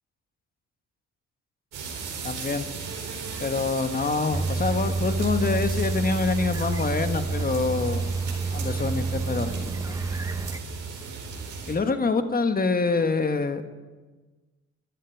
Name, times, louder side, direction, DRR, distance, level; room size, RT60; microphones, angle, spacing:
sound 1, 1.7-11.7, right 4 dB, 85° right, 4.3 m, -36 dB
voice 1, 2.2-2.7 3.4-8.1 8.5-9.9 11.7-13.8, left 4 dB, 30° left, 8 dB, 1.4 m, -26 dB
sound 2, 4.3-10.6, right 4 dB, 10° right, 0.6 m, -29 dB
14.5 x 11.0 x 8.5 m, 1.3 s
cardioid pair, 90°, 30 cm